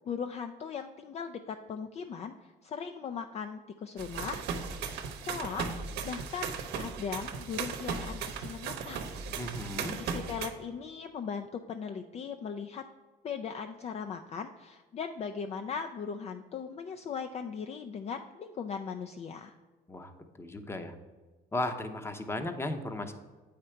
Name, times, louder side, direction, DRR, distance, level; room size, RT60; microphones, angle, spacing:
voice 1, 0.1-4.4 5.2-5.7 6.0-9.2 10.0-12.8 13.2-19.6, left 6 dB, 40° left, 7 dB, 0.4 m, -38 dB
sound 1, 4.0-10.5, right 6 dB, 80° right, 0.9 m, -37 dB
voice 2, 9.4-10.0 19.9-20.1 20.4-21.0 21.5-23.1, left 2 dB, 15° left, 8 dB, 0.7 m, -35 dB
8.2 x 5.0 x 4.4 m, 1.3 s
cardioid pair, 110°, 17 cm